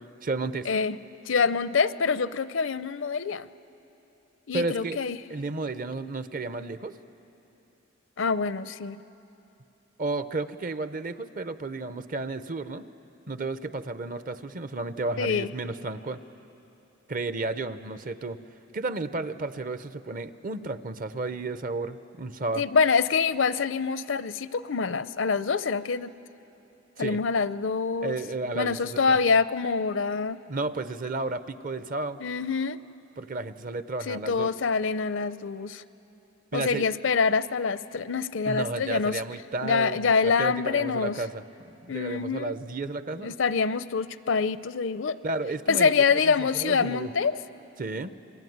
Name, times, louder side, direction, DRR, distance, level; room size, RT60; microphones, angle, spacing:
voice 1, 0.2-0.7 4.5-5.0 5.3-6.9 10.0-12.8 13.3-16.2 17.1-18.4 18.7-22.7 27.0-27.2 28.0-29.0 30.5-32.2 33.2-34.5 36.5-36.9 38.4-43.4 45.2-47.1 47.8-48.1, right 3 dB, 45° right, 12 dB, 0.7 m, -32 dB
voice 2, 1.3-3.5 4.5-5.2 8.2-9.0 15.2-15.5 22.6-26.1 27.0-28.2 28.5-30.4 32.2-32.8 34.1-35.8 36.5-39.2 39.6-41.1 41.9-42.6 43.2-45.2 45.7-47.4, left 5 dB, 70° left, 15 dB, 0.6 m, -25 dB
27.5 x 22.0 x 9.4 m, 2.9 s
head